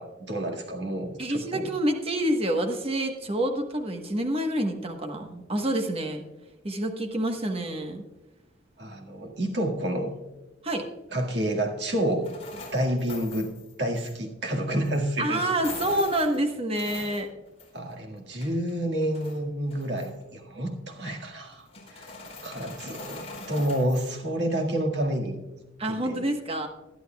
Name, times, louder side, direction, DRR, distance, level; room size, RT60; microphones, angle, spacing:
voice 1, 0.0-1.7 8.8-10.1 11.1-13.5 13.8-15.4 17.7-22.1 22.4-25.4 25.8-26.2, right 1 dB, 65° right, 1 dB, 1.8 m, -29 dB
voice 2, 1.2-6.2 6.6-8.0 10.6-10.8 15.2-17.3 25.8-26.7, right 1 dB, 30° right, 4 dB, 1.2 m, -27 dB
sound 1, 12.2-14.1 14.8-15.0 15.5-17.9 18.2-19.4 19.7-20.2 21.5-24.1, left 3 dB, 35° left, 4.2 m, -42 dB
20.5 x 11.0 x 2.3 m, 1.1 s
head